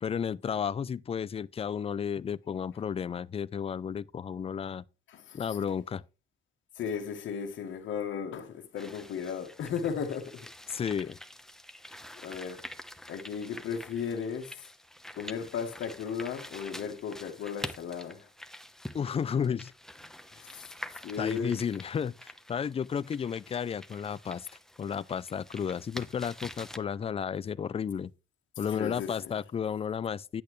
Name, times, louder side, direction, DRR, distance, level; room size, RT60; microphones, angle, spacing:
voice 1, 0.0-4.8 5.3-6.0 10.7-11.2 18.9-19.7 21.2-24.5 24.8-28.1 28.6-30.4, left 7 dB, 30° left, 0.4 m, -33 dB
voice 2, 5.1-5.6 6.8-10.5 12.2-12.6 13.1-14.6 15.2-18.3 19.3-19.5 20.3-20.7 21.0-21.5 28.7-29.4, left 7 dB, 75° left, 1.6 m, -35 dB
sound 1, 8.8-26.8, left 1 dB, ahead, 0.9 m, -46 dB
8.7 x 8.2 x 3.2 m
cardioid pair, 90°, 20 cm